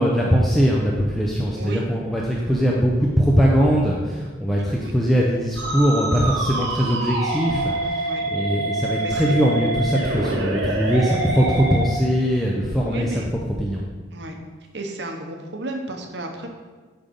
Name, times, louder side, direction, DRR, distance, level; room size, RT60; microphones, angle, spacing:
voice 1, 0.0-13.8, equal, ahead, -4 dB, 0.6 m, -21 dB
Musical instrument, 5.6-11.9, right 2 dB, 75° right, 1.2 m, -26 dB
voice 2, 9.0-9.3 12.9-13.3 14.1-14.4 14.7-16.5, right 2 dB, 60° right, 4 dB, 0.9 m, -33 dB
8.7 x 3.9 x 5.2 m, 1.4 s
head